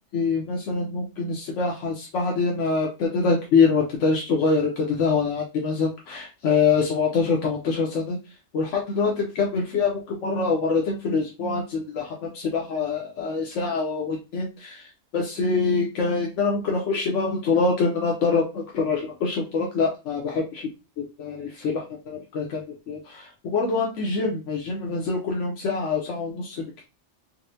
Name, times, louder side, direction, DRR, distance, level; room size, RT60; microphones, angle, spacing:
voice 1, 0.1-8.2 8.5-20.7 21.0-26.9, left 4 dB, 85° left, -1 dB, 1.1 m, -25 dB
4.1 x 2.1 x 2.6 m, 0.29 s
omnidirectional pair, 1.2 m